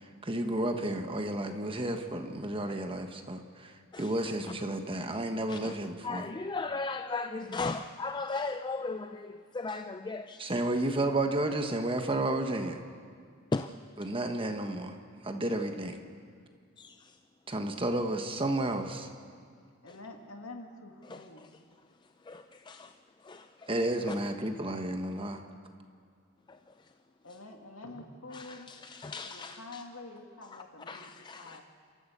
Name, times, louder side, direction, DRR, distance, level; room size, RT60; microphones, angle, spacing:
voice 1, 0.2-3.7 4.0-6.2 10.4-12.8 14.0-15.0 15.2-16.0 17.5-19.1 23.7-25.4, right 1 dB, 25° right, 5 dB, 1.3 m, -31 dB
voice 2, 6.0-10.5 13.5-13.7 16.8-17.2 19.9-20.0 21.0-21.5 22.2-23.0 23.2-23.7 24.1-24.2 26.5-26.9 28.3-29.8 30.4-31.6, left 3 dB, 20° left, 8 dB, 0.4 m, -37 dB
voice 3, 19.8-21.6 27.2-28.7 29.2-31.6, left 2 dB, 75° left, 3 dB, 2.3 m, -47 dB
29.5 x 13.5 x 6.9 m, 2.2 s
head